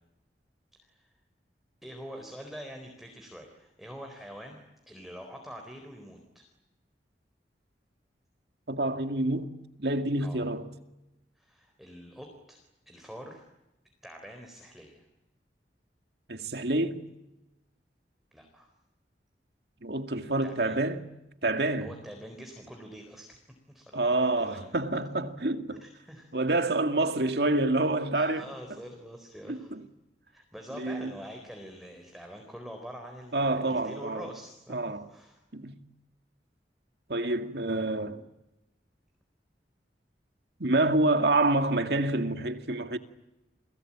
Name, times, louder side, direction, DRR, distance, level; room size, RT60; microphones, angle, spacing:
voice 1, 0.8-1.1 1.8-6.5 10.2-10.4 11.4-13.4 14.0-15.1 18.3-18.7 20.4-20.8 21.8-23.4 23.7-24.8 25.8-26.3 28.1-29.7 30.3-35.4, equal, ahead, 4.2 m, -45 dB
voice 2, 8.7-9.5 9.8-10.7 16.3-17.0 19.8-21.0 21.4-21.9 23.9-25.8 26.3-28.5 29.5-29.8 30.8-31.1 33.3-34.2 34.7-35.1 35.5-35.8 37.1-38.2 40.6-43.0, right 2 dB, 65° right, 2.2 m, -27 dB
30.0 x 22.0 x 8.8 m
head